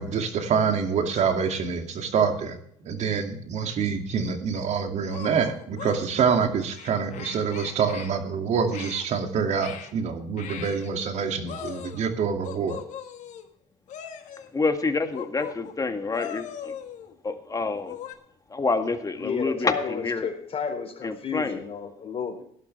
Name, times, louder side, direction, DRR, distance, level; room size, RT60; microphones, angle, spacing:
voice 1, 0.0-2.6 2.8-12.8, right 6 dB, 55° right, 5 dB, 2.4 m, -26 dB
sound 1, 4.2-4.4 5.1-6.0 6.7-8.1 8.7-9.1 9.6-9.9 10.4-10.9 11.5-12.1 12.4-13.5 13.9-14.5 15.1-15.8 16.1-17.1 17.7-18.1, left 9 dB, 60° left, 1.6 m, -39 dB
voice 2, 14.5-16.8 17.2-18.0 18.5-20.3 21.0-21.6, left 3 dB, 25° left, 7 dB, 1.9 m, -27 dB
voice 3, 19.2-22.4, left 6 dB, 45° left, 5 dB, 4.0 m, -32 dB
17.5 x 11.5 x 3.3 m, 0.66 s
supercardioid pair, 70°, 14 cm